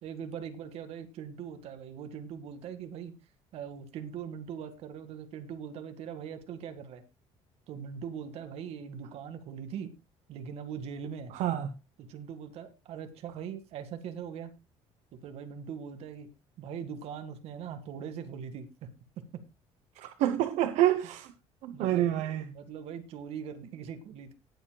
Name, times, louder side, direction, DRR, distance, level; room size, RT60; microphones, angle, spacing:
voice 1, 0.0-3.1 3.5-7.0 7.7-9.9 10.3-11.3 12.1-14.5 15.2-16.3 16.6-18.7 21.7-24.3, right 7 dB, 60° right, 2.0 m, -41 dB
voice 2, 11.3-11.7 20.0-21.3 21.6-22.4, right 12 dB, 80° right, 1.0 m, -27 dB
19.0 x 7.8 x 2.3 m
cardioid pair, 165°, 12 cm